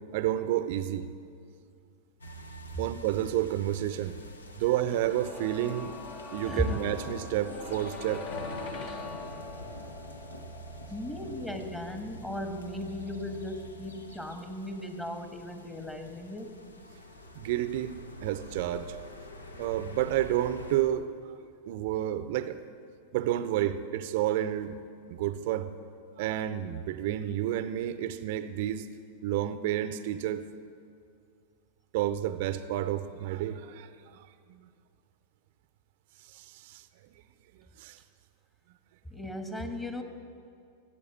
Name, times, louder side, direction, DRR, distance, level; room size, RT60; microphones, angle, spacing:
voice 1, 0.1-1.1 2.8-4.2 4.5-5.9 6.3-8.3 17.4-17.9 18.2-19.0 19.6-21.4 21.7-22.6 23.1-24.8 25.1-25.7 26.2-28.9 29.2-30.4 31.9-34.6 36.3-36.8 37.8-38.0, right 12 dB, 55° right, 12 dB, 0.6 m, -30 dB
sound 1, 2.2-20.8, equal, 80° left, 1.1 m, -46 dB
sound 2, 4.8-16.6 16.9-17.0, left 4 dB, 45° left, 1.5 m, -44 dB
voice 2, 6.5-6.8 10.9-16.6 39.0-40.0, left 1 dB, 10° left, 6 dB, 1.5 m, -36 dB
17.0 x 8.5 x 8.0 m, 2.4 s
figure-of-eight pair, 95°, 0 cm